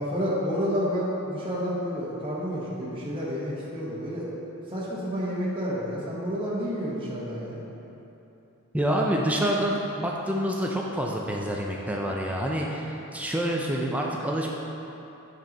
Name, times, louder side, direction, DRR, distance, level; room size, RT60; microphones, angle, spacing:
voice 1, 0.0-4.3 4.7-7.6, equal, 25° right, -8 dB, 1.3 m, -30 dB
voice 2, 8.7-14.5, equal, 5° right, -1 dB, 0.5 m, -27 dB
8.9 x 4.5 x 5.3 m, 3.0 s
head